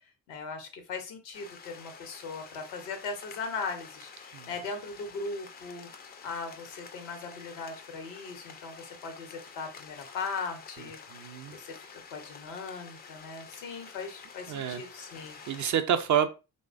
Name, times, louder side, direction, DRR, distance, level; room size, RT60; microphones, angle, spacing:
voice 1, 0.3-5.9 6.2-15.4, left 4 dB, 80° left, 6 dB, 0.8 m, -39 dB
sound 1, 1.3-15.7, left 6 dB, 25° left, 0.3 m, -49 dB
voice 2, 11.1-11.6 14.5-14.8 15.5-16.3, right 9 dB, 40° right, 7 dB, 0.4 m, -28 dB
3.1 x 2.1 x 2.4 m, 0.29 s
hypercardioid pair, 40°, 46 cm